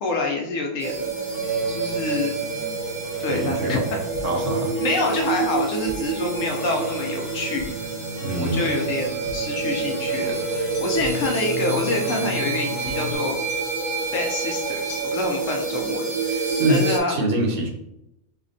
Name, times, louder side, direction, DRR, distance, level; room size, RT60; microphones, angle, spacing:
voice 1, 0.0-1.1 1.7-2.3 3.2-4.0 4.8-7.7 8.4-13.4 14.1-17.1, left 3 dB, 70° left, 1 dB, 1.0 m, -27 dB
sound 1, 0.8-17.0, right 4 dB, 50° right, 0.3 m, -28 dB
sound 2, 1.3-13.1, left 1 dB, 10° left, 0.9 m, -36 dB
voice 2, 3.3-3.8 4.2-4.7 8.2-8.8 16.5-17.7, right 1 dB, 65° right, 1 dB, 1.0 m, -24 dB
Hammer, 9.6-9.8 10.7-11.1 12.1-12.4 13.5-13.9 14.9-15.3, left 7 dB, 90° left, 1.2 m, -43 dB
5.6 x 2.1 x 2.5 m, 0.84 s
omnidirectional pair, 1.5 m